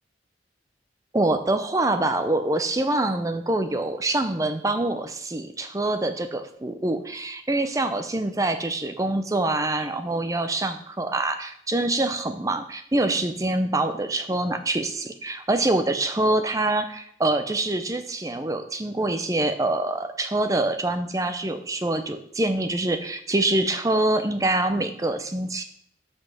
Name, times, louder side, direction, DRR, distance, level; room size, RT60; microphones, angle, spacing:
voice 1, 1.1-25.6, right 2 dB, 20° right, 8 dB, 0.5 m, -25 dB
5.6 x 5.3 x 6.1 m, 0.66 s
head